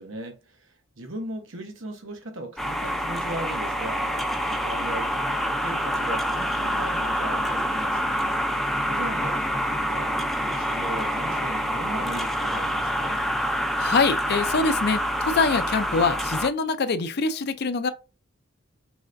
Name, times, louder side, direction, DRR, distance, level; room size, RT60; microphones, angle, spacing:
voice 1, 0.0-8.1 8.9-10.1 10.4-13.2, right 1 dB, 75° right, 1.0 m, -38 dB
sound 1, 2.6-16.5, equal, ahead, 0.4 m, -27 dB
voice 2, 13.8-17.9, left 4 dB, 55° left, 0.5 m, -24 dB
4.8 x 3.3 x 2.5 m
head